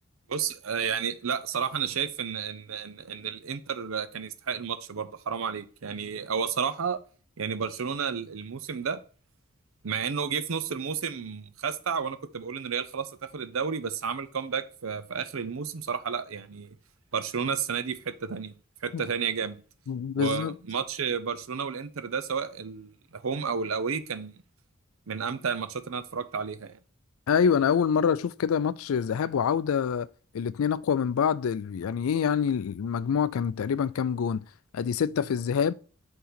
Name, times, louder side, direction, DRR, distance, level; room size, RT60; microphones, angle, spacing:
voice 1, 0.3-7.0 7.4-9.0 9.8-16.8 17.1-18.5 18.8-19.6 20.2-24.3 25.1-26.8, right 6 dB, 70° right, 0.6 m, -31 dB
voice 2, 19.9-20.5 27.3-30.1 30.3-34.4 34.7-35.7, left 7 dB, 75° left, 0.4 m, -26 dB
5.7 x 3.8 x 5.6 m
head